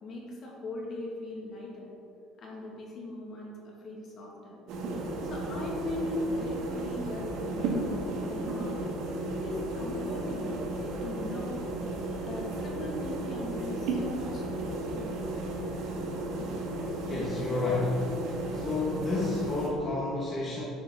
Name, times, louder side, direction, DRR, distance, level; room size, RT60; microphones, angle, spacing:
voice 1, 0.0-1.9 2.4-4.6 5.2-8.8 9.4-10.6 11.0-11.6 12.2-14.4 14.9-15.1 16.4-16.5, left 1 dB, 40° left, -2 dB, 2.2 m, -39 dB
sound 1, 4.7-19.7, right 2 dB, 70° right, 1.7 m, -34 dB
voice 2, 17.1-18.0 18.5-20.6, left 2 dB, 25° left, -6 dB, 1.3 m, -30 dB
9.8 x 6.9 x 3.9 m, 2.7 s
cardioid pair, 135°, 0 cm